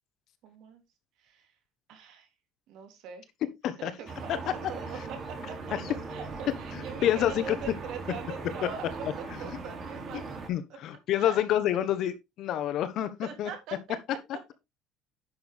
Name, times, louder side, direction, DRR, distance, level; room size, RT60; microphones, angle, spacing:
voice 1, 0.4-0.8 1.2-1.5 1.9-2.3 2.7-3.3 3.8-4.4 4.7-5.6 6.1-10.4 11.2-11.4 13.2-14.0 14.3-14.5, right 6 dB, 65° right, 3.4 m, -42 dB
sound 1, 4.1-10.5, right 3 dB, 35° right, 3.0 m, -39 dB
voice 2, 6.7-7.6 10.5-13.5, left 11 dB, 55° left, 1.3 m, -28 dB
10.5 x 6.5 x 3.6 m
cardioid pair, 145°, 0 cm